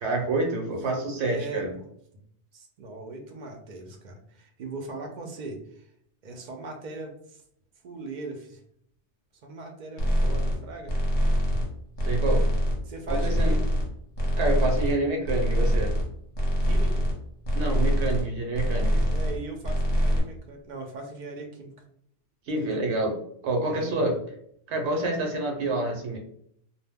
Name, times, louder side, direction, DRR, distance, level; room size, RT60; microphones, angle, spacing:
voice 1, 0.0-1.7 12.0-12.5 13.1-13.6 14.4-15.9 17.5-19.0 22.5-23.1 23.4-24.2 24.7-26.2, right 2 dB, 75° right, 2 dB, 0.9 m, -27 dB
voice 2, 1.2-1.8 2.5-5.9 6.2-7.4 7.8-8.6 9.4-10.9 12.9-13.6 16.6-17.1 19.1-21.7 22.6-22.9 23.7-24.0, right 3 dB, 55° right, 3 dB, 0.5 m, -39 dB
sound 1, 10.0-10.6 10.9-11.7 12.0-12.8 13.1-13.9 14.1-14.9 15.2-16.1 16.3-17.1 17.4-18.3 18.5-19.4 19.6-20.2, equal, 35° left, 0.7 m, -24 dB
2.2 x 2.1 x 3.4 m, 0.68 s
omnidirectional pair, 1.1 m